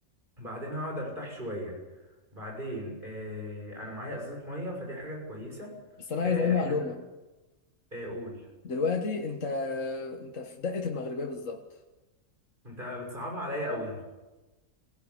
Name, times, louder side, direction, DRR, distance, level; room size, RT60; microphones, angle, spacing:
voice 1, 0.4-1.8 2.3-5.7 6.2-6.7 7.9-8.5 12.6-14.0, equal, 40° right, 0 dB, 6.7 m, -36 dB
voice 2, 6.1-7.0 8.6-11.6, left 5 dB, 70° left, 3 dB, 1.9 m, -30 dB
23.0 x 17.0 x 9.6 m, 1.1 s
omnidirectional pair, 1.4 m